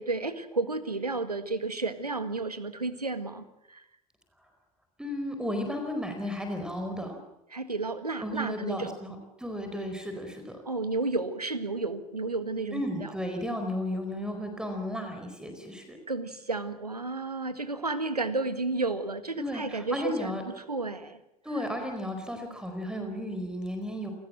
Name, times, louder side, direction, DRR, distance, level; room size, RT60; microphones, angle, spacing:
voice 1, 0.0-3.8 7.5-8.9 10.6-13.1 16.1-21.2, right 3 dB, 85° right, 12 dB, 1.7 m, -32 dB
voice 2, 5.0-7.2 8.2-10.6 12.7-16.0 19.4-20.4 21.4-24.1, left 1 dB, 5° right, 5 dB, 4.7 m, -34 dB
28.5 x 20.0 x 7.7 m, 0.86 s
figure-of-eight pair, 75°, 19 cm